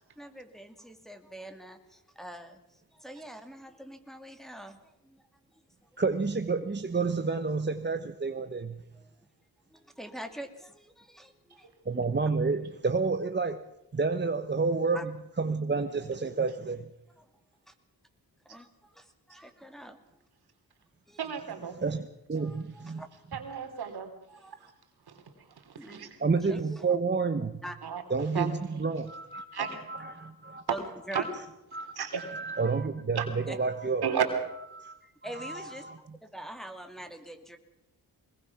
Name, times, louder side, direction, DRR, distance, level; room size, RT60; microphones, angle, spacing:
voice 1, 0.2-5.2 5.5-5.9 9.0-9.3 9.7-11.7 14.9-15.0 17.2-17.3 17.7-17.8 18.4-20.0 21.1-21.3 22.4-23.1 24.3-24.7 25.8-26.1 26.4-27.0 27.6-27.7 30.7-31.3 33.5-33.6 35.2-35.8 36.2-37.6, right 1 dB, ahead, 5 dB, 2.4 m, -44 dB
voice 2, 6.0-8.8 11.9-13.6 13.9-15.1 15.4-16.9 21.8-23.0 26.2-27.6 28.1-30.6 31.7-34.0 34.7-35.0 35.4-36.0, right 4 dB, 30° right, 7 dB, 1.1 m, -30 dB
voice 3, 21.2-21.8 23.3-24.1 24.6-24.7 25.1-26.2 27.8-28.0 28.3-28.5 29.5-29.8 31.1-31.2 32.0-32.5 33.1-33.3 34.0-34.2, right 8 dB, 80° right, 6 dB, 3.0 m, -33 dB
21.5 x 20.5 x 5.9 m, 0.85 s
cardioid pair, 80°, 38 cm